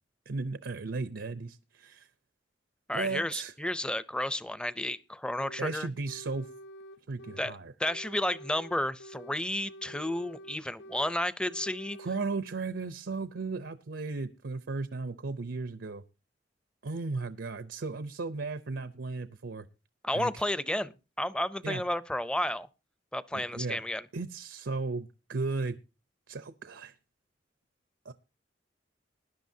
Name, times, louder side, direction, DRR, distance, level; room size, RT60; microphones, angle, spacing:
voice 1, 0.3-2.1 2.9-3.5 5.6-6.5 7.1-7.7 12.0-16.0 16.8-19.7 20.1-20.3 21.6-21.8 23.3-23.8 24.1-25.8 26.3-26.9 28.0-28.1, right 3 dB, 85° right, 12 dB, 0.7 m, -35 dB
voice 2, 2.9-5.9 7.4-12.0 20.0-20.9 21.2-22.7 23.1-24.1, left 1 dB, 5° left, 16 dB, 0.5 m, -32 dB
sound 1, 5.4-5.8 6.1-7.6 7.8-9.4 9.7-11.2 11.4-12.4, equal, 70° left, 0.5 m, -48 dB
20.0 x 11.0 x 2.7 m, 0.29 s
head